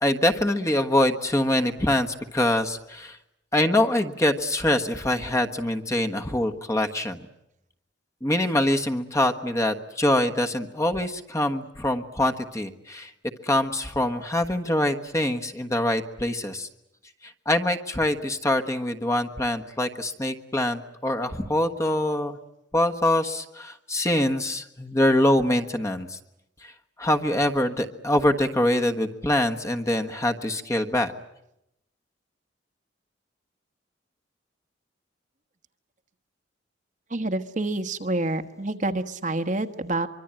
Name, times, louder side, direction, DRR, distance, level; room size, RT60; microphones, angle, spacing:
voice 1, 0.0-3.2 3.5-7.2 8.2-13.1 13.4-16.7 17.2-22.4 22.7-26.2 26.6-26.7 27.0-31.1, left 1 dB, 15° left, 5 dB, 1.3 m, -24 dB
voice 2, 37.1-40.1, right 2 dB, 40° right, 8 dB, 1.3 m, -27 dB
24.5 x 24.0 x 8.9 m, 0.82 s
head